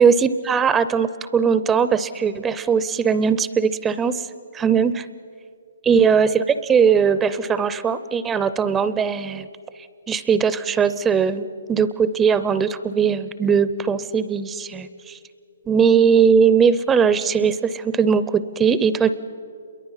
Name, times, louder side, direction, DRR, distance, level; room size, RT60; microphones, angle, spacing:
voice 1, 0.0-4.2 4.5-5.1 5.8-9.5 10.1-15.2 15.7-19.1, right 6 dB, 10° right, 14 dB, 0.5 m, -19 dB
28.0 x 22.5 x 5.6 m, 2.4 s
hypercardioid pair, 155°, 0 cm